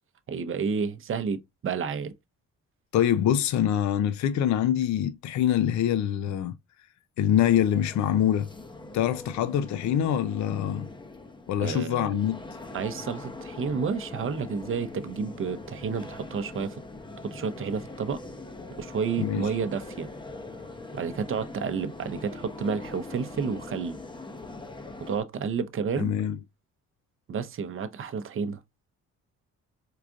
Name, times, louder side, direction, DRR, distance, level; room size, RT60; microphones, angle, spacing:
voice 1, 0.3-2.1 11.6-12.1 12.7-16.8 17.3-18.2 18.8-20.1 20.9-24.0 25.0-26.1 27.3-28.6, right 6 dB, 45° right, 0.7 m, -30 dB
voice 2, 2.9-6.5 7.2-8.5 8.9-10.9 11.5-12.4 19.2-19.5 26.0-26.4, left 10 dB, 70° left, 0.5 m, -25 dB
sound 1, 7.4-25.2, left 2 dB, 15° left, 0.7 m, -42 dB
4.8 x 2.4 x 2.3 m
cardioid pair, 90°, 30 cm